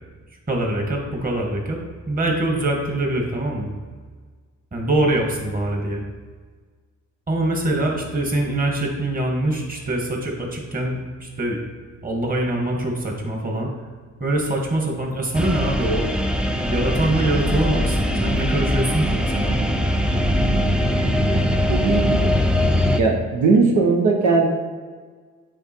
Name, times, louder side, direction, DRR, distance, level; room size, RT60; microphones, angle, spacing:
voice 1, 0.5-1.8 2.1-3.7 4.7-6.0 7.3-11.6 12.0-13.7 14.2-16.1 16.6-19.7, right 1 dB, 30° right, 0 dB, 1.9 m, -24 dB
sound 1, 15.3-23.0, equal, 5° right, 0.5 m, -21 dB
voice 2, 21.7-22.2 23.0-24.5, right 4 dB, 80° right, 0 dB, 1.2 m, -18 dB
9.0 x 3.9 x 4.5 m, 1.5 s
cardioid pair, 90°, 30 cm